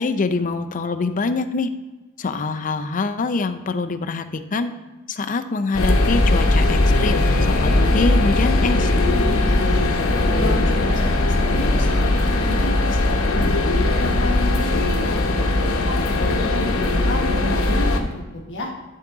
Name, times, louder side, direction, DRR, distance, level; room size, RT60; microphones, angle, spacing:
voice 1, 0.0-1.7 2.2-4.7 5.1-7.2 7.6-8.9, left 3 dB, 40° left, 8 dB, 0.5 m, -24 dB
sound 1, 5.7-18.0, left 2 dB, 85° left, 0.9 m, -19 dB
voice 2, 9.4-9.8 10.2-13.5 14.0-18.7, left 2 dB, 60° left, -2 dB, 1.2 m, -31 dB
11.5 x 3.9 x 3.6 m, 1.2 s
head